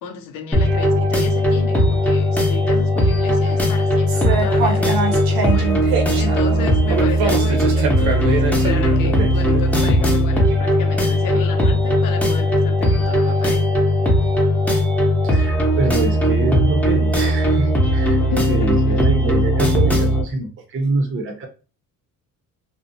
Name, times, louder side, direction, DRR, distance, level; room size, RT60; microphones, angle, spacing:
voice 1, 0.0-5.7 6.1-13.7 18.3-19.0, left 6 dB, 70° left, 0.7 m, -33 dB
sound 1, 0.5-20.2, equal, 5° left, 0.7 m, -18 dB
sound 2, 4.1-9.6, right 4 dB, 85° right, 0.8 m, -24 dB
voice 2, 15.2-21.5, right 3 dB, 35° right, 0.6 m, -25 dB
2.5 x 2.0 x 2.6 m
cardioid pair, 95°, 35 cm